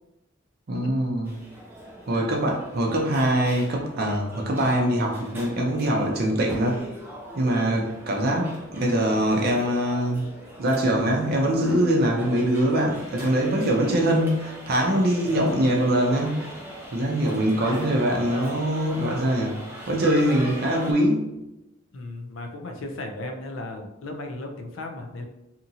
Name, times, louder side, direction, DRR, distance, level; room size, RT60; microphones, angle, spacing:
voice 1, 0.7-1.3 2.1-6.8 7.4-10.2 10.6-16.4 16.9-19.6 19.9-21.3, right 1 dB, 50° right, 0 dB, 0.5 m, -23 dB
sound 1, 1.2-20.9, equal, 10° right, 0.6 m, -40 dB
voice 2, 17.1-17.5 21.9-25.2, left 2 dB, 65° left, 4 dB, 0.5 m, -36 dB
2.8 x 2.5 x 2.7 m, 0.90 s
head